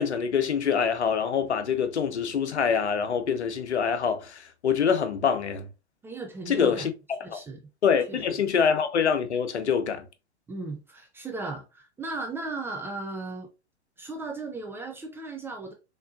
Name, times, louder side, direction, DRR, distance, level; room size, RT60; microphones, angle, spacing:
voice 1, 0.0-5.7 6.5-7.4 7.8-10.1, left 6 dB, 75° left, 0.8 m, -25 dB
voice 2, 6.0-6.9 7.2-7.6 8.1-8.2 10.5-13.5 14.0-15.7, right 3 dB, 5° right, 0.4 m, -36 dB
4.2 x 3.6 x 2.5 m
figure-of-eight pair, 105°, 34 cm